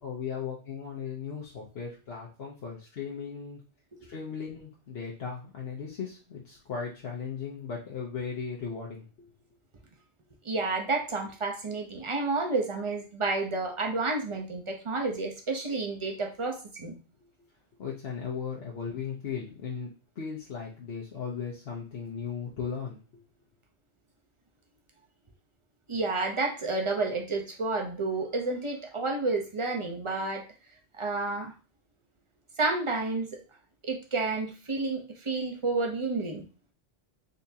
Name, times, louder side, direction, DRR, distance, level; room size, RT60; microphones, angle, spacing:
voice 1, 0.0-3.6 4.0-9.1 17.8-23.0, left 6 dB, 65° left, -3 dB, 1.0 m, -37 dB
voice 2, 10.4-17.0 25.9-30.4 30.9-31.5 32.6-33.3 33.8-36.4, right 3 dB, 30° right, 2 dB, 0.7 m, -30 dB
3.9 x 3.4 x 2.7 m, 0.33 s
omnidirectional pair, 1.2 m